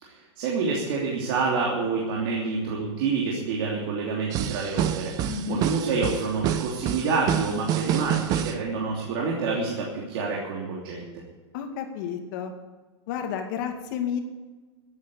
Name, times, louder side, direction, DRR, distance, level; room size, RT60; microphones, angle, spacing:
voice 1, 0.0-11.1, right 4 dB, 50° right, -3 dB, 3.0 m, -28 dB
sound 1, 4.3-8.7, right 10 dB, 25° right, 0.6 m, -28 dB
voice 2, 5.3-5.6 11.5-12.5 13.1-14.2, left 8 dB, 45° left, 5 dB, 2.2 m, -31 dB
14.5 x 9.1 x 8.4 m, 1.3 s
supercardioid pair, 170°, 15 cm